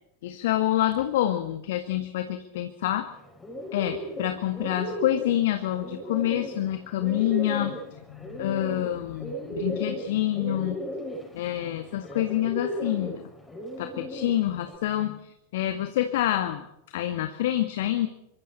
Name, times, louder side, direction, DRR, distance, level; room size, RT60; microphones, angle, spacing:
voice 1, 0.2-3.1 3.7-10.8 11.3-13.2 13.8-16.7 16.9-18.1, left 13 dB, 55° left, 8 dB, 1.8 m, -27 dB
Bird, 3.1-14.8, equal, 10° left, 6.2 m, -36 dB
27.0 x 24.0 x 4.3 m, 0.81 s
figure-of-eight pair, 90°, 0 cm